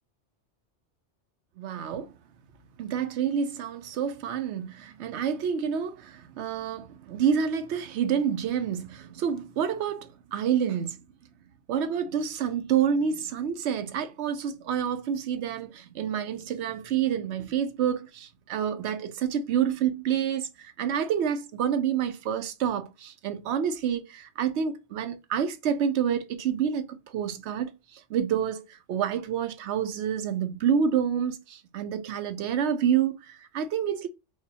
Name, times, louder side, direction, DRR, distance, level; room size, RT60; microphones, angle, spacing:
voice 1, 1.6-2.1 2.8-11.0 11.7-34.1, right 8 dB, 75° right, 0.9 m, -28 dB
4.7 x 2.2 x 2.8 m
omnidirectional pair, 1.2 m